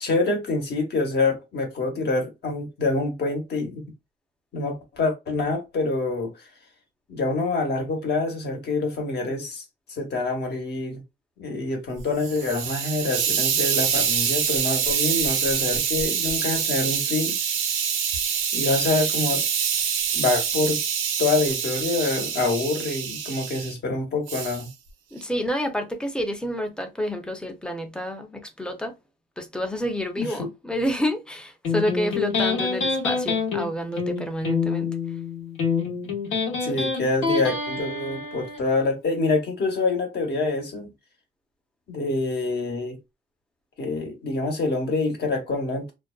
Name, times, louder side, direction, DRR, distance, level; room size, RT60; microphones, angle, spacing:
voice 1, 0.0-3.8 4.5-6.3 7.1-9.6 9.9-11.0 11.4-17.4 18.5-19.4 20.1-20.8 21.2-24.7 30.2-30.5 36.6-40.9 41.9-43.0 43.8-45.9, left 3 dB, 55° left, 1.0 m, -26 dB
Hiss, 12.0-23.7 24.3-24.7, right 7 dB, 80° right, 0.6 m, -25 dB
voice 2, 25.1-29.0 29.4-35.0, equal, 5° left, 0.5 m, -29 dB
Electric guitar, 31.6-38.6, left 5 dB, 85° left, 1.0 m, -26 dB
2.5 x 2.1 x 2.3 m
cardioid pair, 90°, 20 cm